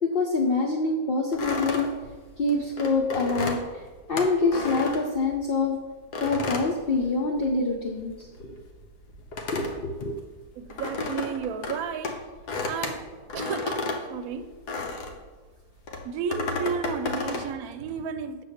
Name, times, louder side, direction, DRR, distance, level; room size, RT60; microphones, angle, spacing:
voice 1, 0.0-1.9 2.4-3.8 4.1-5.7 6.2-8.6 9.5-10.2, left 3 dB, 50° left, 0.7 m, -26 dB
sound 1, 1.3-5.6 6.1-7.6 7.9-15.3 15.8-17.5, left 3 dB, 80° left, 1.5 m, -33 dB
voice 2, 10.6-12.2 12.6-13.1 13.3-14.5 16.0-18.4, right 6 dB, 70° right, 1.0 m, -32 dB
8.2 x 4.1 x 6.5 m
omnidirectional pair, 1.7 m